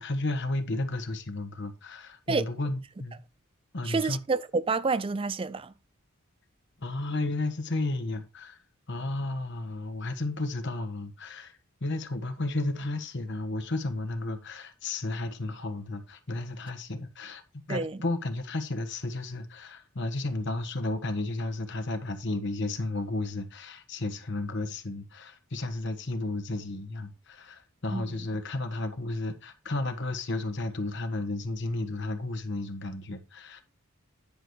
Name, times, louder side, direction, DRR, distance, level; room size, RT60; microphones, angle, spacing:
voice 1, 0.0-3.2 3.7-4.2 6.8-8.6 8.9-17.4 17.7-33.6, left 2 dB, 55° left, 1.3 m, -33 dB
voice 2, 3.8-5.7 17.7-18.0 27.9-28.2, right 4 dB, 25° right, 0.4 m, -28 dB
10.5 x 4.9 x 4.7 m
head